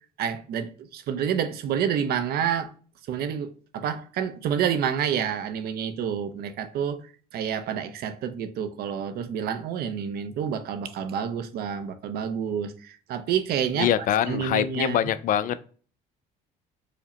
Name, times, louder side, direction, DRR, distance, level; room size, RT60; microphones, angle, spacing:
voice 1, 0.2-2.7 3.1-7.0 7.3-13.9 14.3-15.0, right 8 dB, 65° right, 0.6 m, -28 dB
voice 2, 13.8-15.6, left 10 dB, 55° left, 0.4 m, -24 dB
4.9 x 2.1 x 2.8 m
cardioid pair, 110°, 17 cm